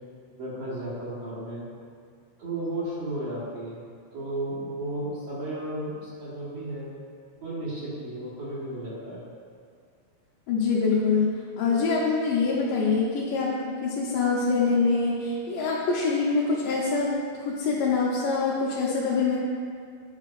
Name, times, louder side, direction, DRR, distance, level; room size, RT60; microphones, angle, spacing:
voice 1, 0.4-1.6 2.4-3.8 4.1-6.9 7.4-9.2, right 1 dB, 55° right, -10 dB, 2.3 m, -33 dB
voice 2, 10.5-17.1 17.4-19.4, left 4 dB, 80° left, -6 dB, 2.5 m, -25 dB
9.8 x 5.8 x 2.5 m, 2.1 s
omnidirectional pair, 3.9 m